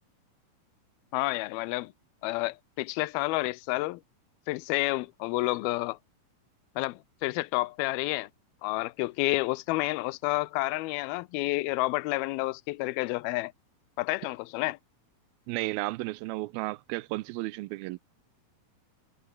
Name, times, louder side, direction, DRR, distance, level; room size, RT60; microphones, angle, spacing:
voice 1, 1.1-1.9 2.2-4.0 4.5-6.0 6.8-8.3 8.6-13.5 14.0-14.8, left 20 dB, 90° left, 2.6 m, -30 dB
voice 2, 15.5-18.0, right 20 dB, 85° right, 2.5 m, -33 dB
omnidirectional pair, 4.2 m